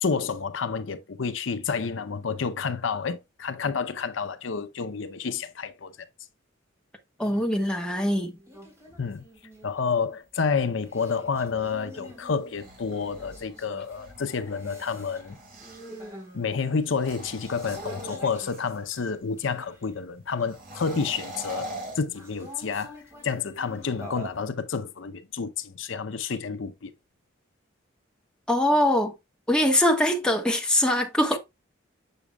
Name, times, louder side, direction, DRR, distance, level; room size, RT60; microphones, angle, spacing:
voice 1, 0.0-5.9 9.0-9.2 9.6-15.4 16.3-21.7 22.0-26.9, left 5 dB, 75° left, 0.6 m, -29 dB
voice 2, 7.2-8.3 28.5-29.1 29.5-31.4, left 1 dB, 5° left, 1.3 m, -22 dB
sound 1, 7.2-7.6 8.0-19.9 20.3-21.2 22.1-24.5, equal, 15° right, 3.5 m, -47 dB
sound 2, 12.3-16.1 16.8-18.9 20.5-22.8, right 1 dB, 45° right, 2.8 m, -42 dB
7.0 x 6.7 x 2.3 m
head